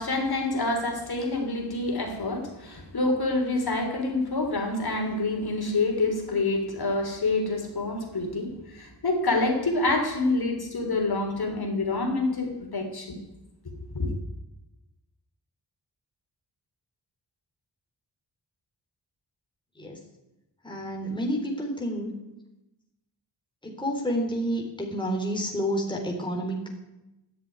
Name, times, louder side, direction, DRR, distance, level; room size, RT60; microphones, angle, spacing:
voice 1, 0.0-13.2 13.6-14.1, left 2 dB, 60° left, 2 dB, 3.6 m, -27 dB
voice 2, 20.6-22.2 23.6-26.7, equal, 10° left, -1 dB, 3.6 m, -29 dB
13.5 x 10.5 x 9.6 m, 0.95 s
wide cardioid pair, 85°, 43 cm